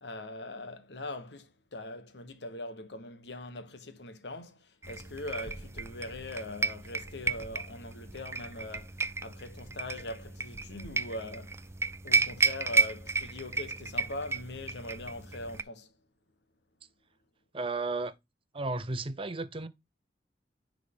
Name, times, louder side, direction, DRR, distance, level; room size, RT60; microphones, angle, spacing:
voice 1, 0.0-11.7 12.0-15.9, left 2 dB, 80° left, 1.2 m, -42 dB
sound 1, 4.8-15.6, right 4 dB, 15° right, 0.4 m, -33 dB
voice 2, 17.5-18.1 18.5-19.7, right 3 dB, 30° right, 0.8 m, -33 dB
10.0 x 3.7 x 3.7 m
head